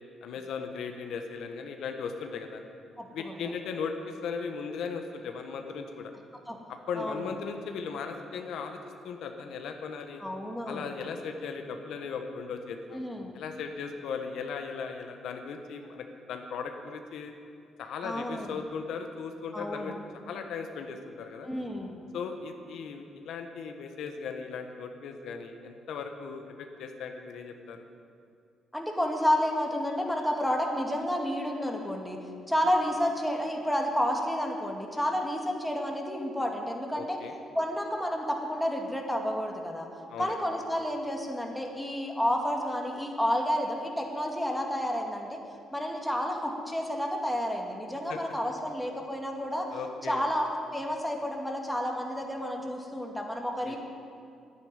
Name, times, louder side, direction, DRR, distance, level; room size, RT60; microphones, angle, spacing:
voice 1, 0.2-2.6 3.1-6.1 6.9-8.8 9.0-10.2 10.7-13.0 13.3-17.3 17.8-19.9 20.2-21.5 22.1-27.9 36.9-37.4 40.1-40.4 48.1-48.2 49.7-50.2 53.6-53.8, left 5 dB, 75° left, 5 dB, 1.2 m, -37 dB
voice 2, 3.0-3.4 6.5-6.6 7.0-7.2 10.2-10.9 12.9-13.4 18.0-18.5 19.5-19.9 21.4-21.9 28.7-32.2 32.5-37.2 37.5-39.9 40.2-45.4 45.7-49.7 50.1-53.8, equal, ahead, 1 dB, 2.2 m, -30 dB
10.5 x 9.8 x 9.8 m, 2.4 s
cardioid pair, 90°, 0 cm